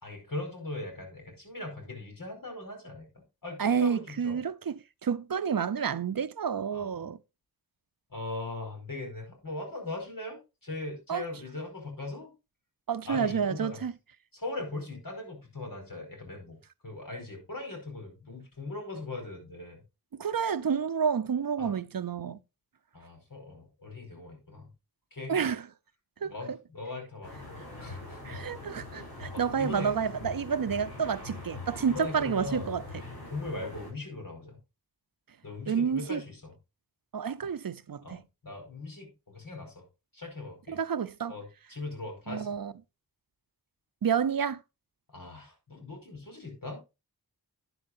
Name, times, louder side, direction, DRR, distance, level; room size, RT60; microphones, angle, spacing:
voice 1, 0.0-3.1 3.4-4.4 6.7-7.0 8.1-12.3 13.1-13.8 14.3-19.8 21.6-21.8 22.9-24.7 25.1-25.3 26.2-28.2 29.3-29.9 31.9-32.7 33.3-34.6 35.4-36.5 38.0-39.8 40.1-40.8 41.3-42.5 45.1-46.8, left 2 dB, 60° left, 5.0 m, -40 dB
voice 2, 3.6-7.2 11.1-11.2 12.9-13.9 20.1-22.4 25.3-25.7 26.2-26.3 28.2-32.8 35.7-36.2 37.1-38.2 40.7-41.3 42.3-42.7 44.0-44.6, right 7 dB, 65° right, 0.6 m, -29 dB
sound 1, 27.2-33.9, left 2 dB, 80° left, 6.6 m, -43 dB
11.5 x 9.9 x 2.6 m
wide cardioid pair, 70°, 37 cm